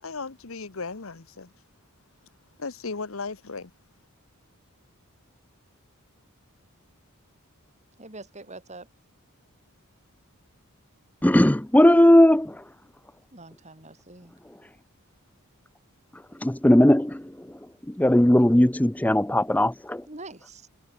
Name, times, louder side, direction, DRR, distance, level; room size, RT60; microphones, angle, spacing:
voice 1, 0.0-1.5 2.6-3.7, left 4 dB, 65° left, 1.1 m, -36 dB
voice 2, 8.0-8.9 13.3-14.4 20.1-20.7, right 2 dB, 30° right, 6.6 m, -44 dB
voice 3, 11.2-12.6 16.1-17.5 17.9-20.0, left 1 dB, 5° left, 0.6 m, -18 dB
head